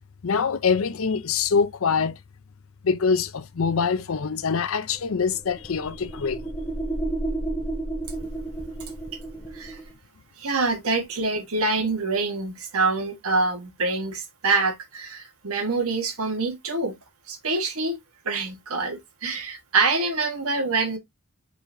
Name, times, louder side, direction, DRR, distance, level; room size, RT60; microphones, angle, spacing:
voice 1, 0.2-2.2 2.8-6.4, left 5 dB, 70° left, 0.6 m, -24 dB
sound 1, 5.0-9.9, right 2 dB, 10° left, 0.8 m, -32 dB
voice 2, 10.4-17.0 17.3-18.0 18.2-21.0, right 3 dB, 85° right, 1.3 m, -25 dB
4.9 x 4.0 x 2.6 m
head